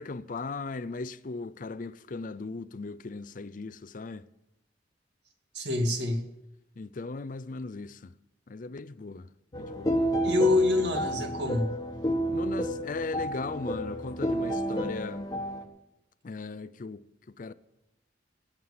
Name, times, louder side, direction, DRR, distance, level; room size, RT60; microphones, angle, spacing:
voice 1, 0.0-4.3 6.8-8.1 8.5-10.0 12.3-15.3 16.2-17.5, left 3 dB, 45° left, 0.5 m, -38 dB
voice 2, 5.5-6.2 10.2-11.7, left 2 dB, 65° right, 2.2 m, -25 dB
sound 1, 9.5-15.6, equal, 20° left, 1.3 m, -31 dB
17.0 x 7.5 x 8.4 m
head